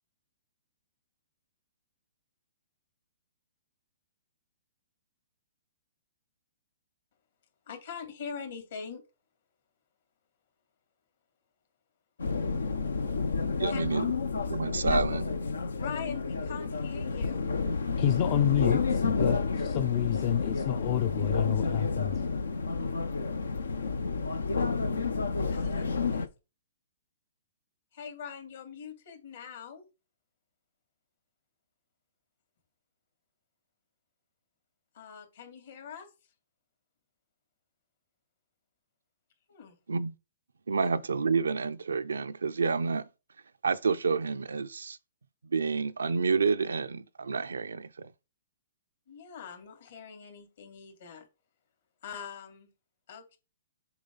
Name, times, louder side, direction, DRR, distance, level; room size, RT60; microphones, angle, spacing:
voice 1, 7.7-9.0 13.7-13.8 14.8-15.0 15.8-17.5 25.4-26.3 27.9-29.8 34.9-36.1 39.5-39.8 40.8-40.9 49.1-51.3 52.0-52.7 53.1-53.4, left 6 dB, 65° left, 3.0 m, -42 dB
sound 1, 12.2-26.3, left 4 dB, 90° left, 0.7 m, -30 dB
voice 2, 13.6-14.0 14.5-15.2 39.9-40.1 40.7-43.1 43.6-45.0 45.5-48.1, right 5 dB, 90° right, 0.5 m, -29 dB
voice 3, 18.0-22.2, left 11 dB, 40° left, 0.5 m, -28 dB
7.1 x 5.0 x 4.0 m
hypercardioid pair, 135°, 0 cm